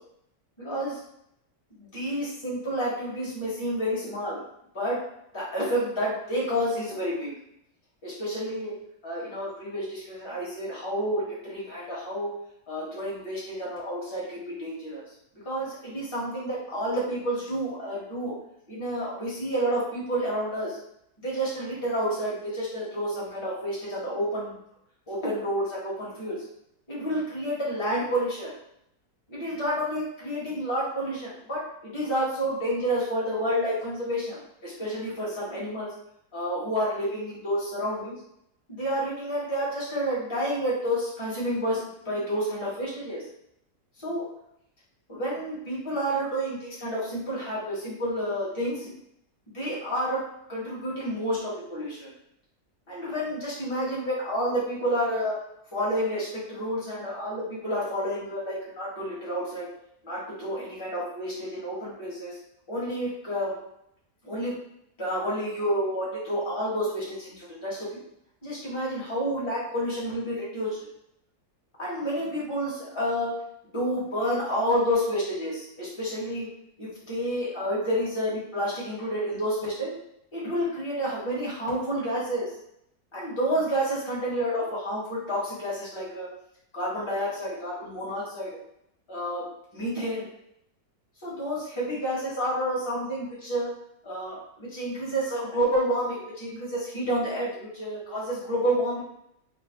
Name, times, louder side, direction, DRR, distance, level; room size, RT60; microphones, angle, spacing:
voice 1, 0.6-1.0 1.8-4.4 4.7-5.0 5.3-7.3 8.0-8.7 9.0-12.3 12.7-15.0 15.4-18.3 18.7-20.8 21.2-24.5 25.1-26.4 26.9-28.5 29.3-35.9 36.3-38.1 38.7-41.8 42.0-43.2 44.0-44.3 45.1-48.9 49.5-50.2 50.5-52.1 52.9-55.3 55.7-59.7 60.0-62.4 62.7-63.6 64.2-64.5 65.0-68.0 68.4-70.8 71.8-73.3 73.7-76.5 76.8-80.0 80.3-82.5 83.1-86.3 86.7-88.5 89.1-90.3 91.2-93.7 94.0-97.5 97.7-99.0, equal, 25° left, -7 dB, 0.8 m, -29 dB
3.1 x 2.1 x 2.3 m, 0.77 s
omnidirectional pair, 1.7 m